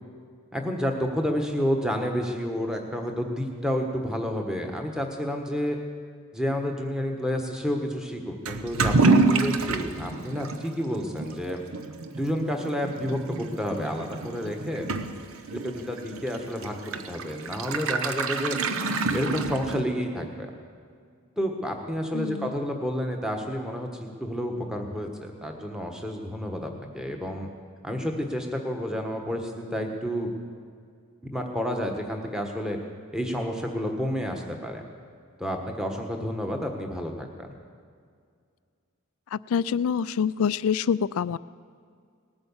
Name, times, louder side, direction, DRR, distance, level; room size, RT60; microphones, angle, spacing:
voice 1, 0.5-5.8 6.3-11.6 12.1-14.9 15.5-18.6 19.1-20.5 21.4-23.9 24.2-27.5 27.8-30.3 31.3-32.8 33.1-34.8 35.4-37.5, equal, 5° right, 2 dB, 1.2 m, -30 dB
Toilet flush / Liquid, 8.5-20.1, right 3 dB, 70° right, 0.8 m, -28 dB
voice 2, 22.1-22.5 39.3-41.4, left 7 dB, 70° left, 19 dB, 0.3 m, -26 dB
19.0 x 8.7 x 7.2 m, 2.2 s
head